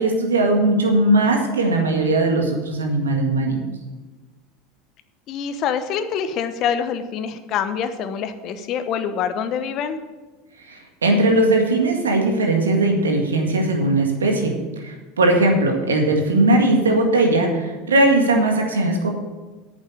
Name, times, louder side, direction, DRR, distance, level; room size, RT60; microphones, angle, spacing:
voice 1, 0.0-3.6 10.7-14.6 14.8-19.1, right 2 dB, 85° right, 3 dB, 1.9 m, -19 dB
voice 2, 5.3-10.0, left 7 dB, 50° left, 9 dB, 1.0 m, -25 dB
8.9 x 7.2 x 8.3 m, 1.2 s
hypercardioid pair, 80°, 0 cm